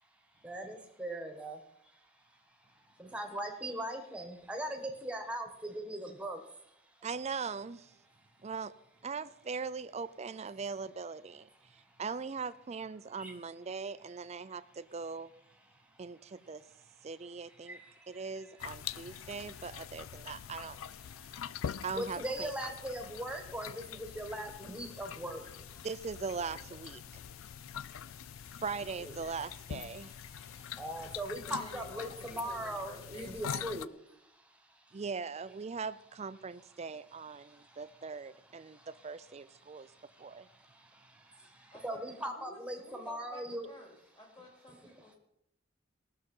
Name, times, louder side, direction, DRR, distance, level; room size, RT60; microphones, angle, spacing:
voice 1, 0.4-1.6 1.9-2.1 2.7-6.6 11.9-12.0 13.2-13.3 15.9-16.0 17.6-18.5 18.8-19.3 20.2-20.3 21.0-25.9 27.0-28.6 29.0-29.1 30.0-33.9 34.1-35.0 37.4-37.8 38.6-38.9 39.6-43.7, right 1 dB, 5° right, 4 dB, 1.4 m, -41 dB
voice 2, 7.0-7.9 8.4-8.7 9.0-15.3 16.0-16.6 17.0-17.8 18.1-20.8 21.8-22.5 25.8-27.2 28.6-30.1 34.9-39.9 40.2-40.5, right 5 dB, 35° right, 15 dB, 0.4 m, -40 dB
sound 1, 18.6-33.9, left 9 dB, 90° left, 0.4 m, -44 dB
voice 3, 31.4-33.8 41.7-45.2, left 1 dB, 25° left, 1 dB, 3.1 m, -53 dB
18.0 x 6.6 x 5.4 m, 0.78 s
head